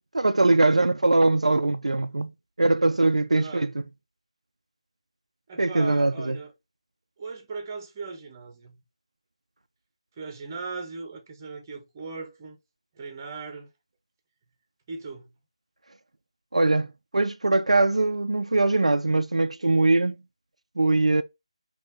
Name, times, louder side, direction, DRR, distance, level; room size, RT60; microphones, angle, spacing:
voice 1, 0.1-2.3 2.6-3.8 5.6-6.4 16.5-20.1 20.8-21.2, right 2 dB, 80° right, 0.4 m, -22 dB
voice 2, 3.3-3.7 5.5-6.5 7.2-8.8 10.2-12.6 12.9-13.7 14.9-15.4, right 4 dB, 25° right, 0.9 m, -38 dB
4.3 x 3.0 x 3.6 m
figure-of-eight pair, 155°, 3 cm